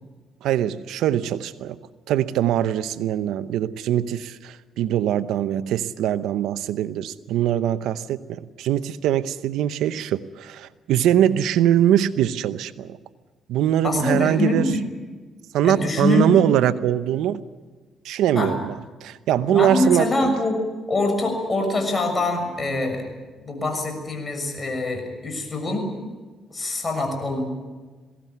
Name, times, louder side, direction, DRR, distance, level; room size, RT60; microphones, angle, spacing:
voice 1, 0.4-1.8 2.1-13.0 13.5-14.6 15.5-17.4 18.0-18.7 19.0-20.3, right 11 dB, 85° right, 13 dB, 0.8 m, -22 dB
voice 2, 13.8-14.8 15.6-16.4 18.3-18.5 19.5-20.6 20.9-23.1 23.4-26.0 26.5-27.4, left 2 dB, 30° left, 5 dB, 6.5 m, -24 dB
21.5 x 17.0 x 9.4 m, 1.3 s
cardioid pair, 90°, 0 cm